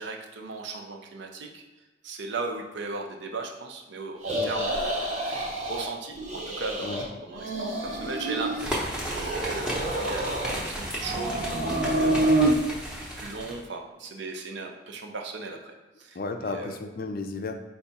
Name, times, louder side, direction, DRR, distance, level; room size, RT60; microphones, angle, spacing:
voice 1, 0.0-1.6 2.0-16.2 16.4-16.8, right 3 dB, 70° right, 2 dB, 0.6 m, -37 dB
sound 1, 4.2-5.9 6.2-7.0 7.3-8.7 9.0-10.6 11.0-12.5, right 2 dB, 40° right, 0.8 m, -28 dB
sound 2, 8.6-13.6, equal, 5° right, 0.7 m, -34 dB
voice 2, 16.1-17.5, left 3 dB, 50° left, 5 dB, 0.4 m, -33 dB
4.7 x 2.3 x 4.0 m, 1.2 s
head